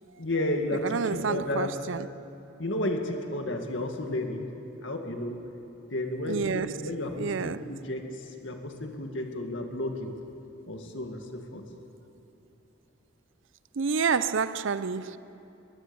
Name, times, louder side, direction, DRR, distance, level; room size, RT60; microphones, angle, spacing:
voice 1, 0.2-1.8 2.6-5.4 5.9-10.1 10.7-11.6, left 1 dB, 70° left, 2.1 m, -32 dB
voice 2, 0.8-2.1 6.3-6.9 7.2-7.6 13.8-15.2, right 5 dB, 75° right, 0.6 m, -29 dB
22.0 x 21.0 x 7.0 m
head